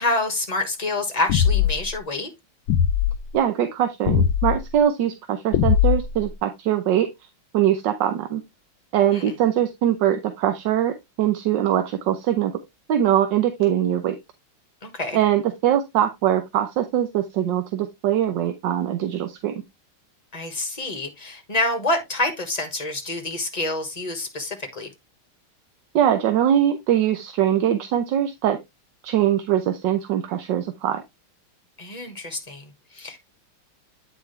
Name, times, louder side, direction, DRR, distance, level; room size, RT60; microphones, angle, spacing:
voice 1, 0.0-2.3 9.1-9.2 14.8-15.2 20.3-24.9 31.8-33.2, left 2 dB, 20° left, 1.4 m, -27 dB
sound 1, 1.3-1.9 2.7-3.1 4.1-4.6 5.5-6.2, left 9 dB, 75° left, 1.4 m, -19 dB
voice 2, 3.3-7.1 7.5-8.4 8.9-12.6 12.9-14.1 15.1-19.6 25.9-28.6 29.0-31.0, right 11 dB, 70° right, 1.3 m, -22 dB
8.8 x 4.9 x 3.2 m
omnidirectional pair, 2.3 m